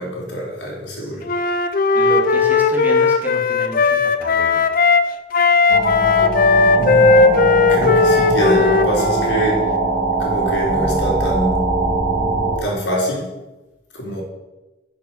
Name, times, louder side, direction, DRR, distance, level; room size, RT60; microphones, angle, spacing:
voice 1, 0.0-1.2 6.8-9.6 10.2-11.6 12.6-13.3 13.9-14.2, equal, 75° left, -3 dB, 4.1 m, -24 dB
voice 2, 1.0-1.3 1.9-4.6, right 1 dB, 10° right, -1 dB, 2.1 m, -31 dB
Wind instrument woodwind instrument, 1.2-5.1 5.3-9.4, left 4 dB, 50° left, 0.7 m, -16 dB
sound 1, 5.7-12.6, right 2 dB, 40° right, 3.5 m, -21 dB
10.5 x 6.2 x 7.2 m, 1.1 s
head